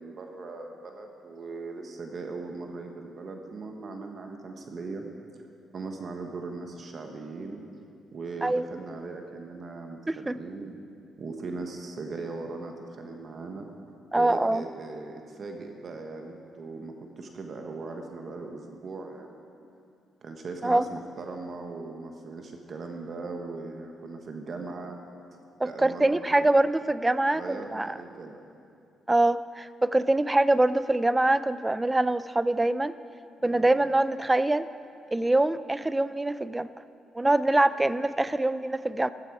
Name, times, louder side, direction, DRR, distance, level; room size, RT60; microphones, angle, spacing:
voice 1, 0.0-5.0 5.3-5.4 5.7-7.6 8.1-10.8 11.2-13.7 14.1-19.5 20.2-25.0 25.6-26.5 27.3-28.4 33.4-33.7, right 3 dB, 50° right, 3 dB, 1.3 m, -39 dB
voice 2, 10.1-10.4 14.1-14.6 20.6-20.8 25.6-27.9 29.1-32.9 33.4-34.7 35.1-36.7 37.2-39.1, right 2 dB, 15° right, 15 dB, 0.4 m, -24 dB
14.0 x 14.0 x 4.8 m, 2.5 s
cardioid pair, 90°, 0 cm